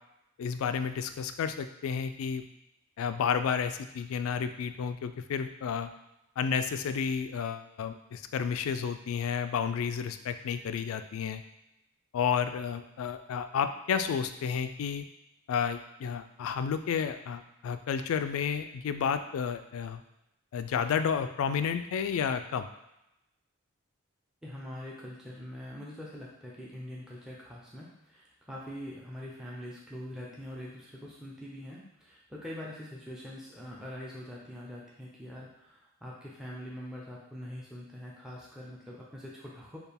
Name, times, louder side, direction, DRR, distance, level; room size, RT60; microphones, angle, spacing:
voice 1, 0.4-2.4 3.0-5.9 6.4-11.4 12.1-15.0 15.5-20.0 20.5-22.7, left 7 dB, 80° left, 10 dB, 0.3 m, -31 dB
voice 2, 24.4-39.8, left 1 dB, 5° right, -5 dB, 0.5 m, -43 dB
4.4 x 2.3 x 3.4 m, 0.87 s
head